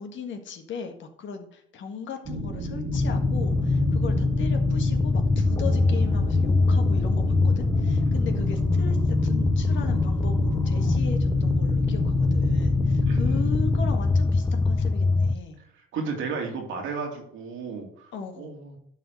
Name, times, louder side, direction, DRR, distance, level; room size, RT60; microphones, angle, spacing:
voice 1, 0.0-15.6 18.1-18.6, left 6 dB, 70° left, 5 dB, 1.7 m, -38 dB
sound 1, 2.3-13.9, right 1 dB, 65° right, 1.9 m, -32 dB
sound 2, 2.9-15.3, left 3 dB, 20° left, 0.7 m, -23 dB
voice 2, 13.1-13.5 15.9-18.1 18.4-18.8, right 4 dB, 90° right, 1 dB, 2.5 m, -33 dB
11.5 x 4.4 x 6.5 m, 0.71 s
cardioid pair, 90°, 20 cm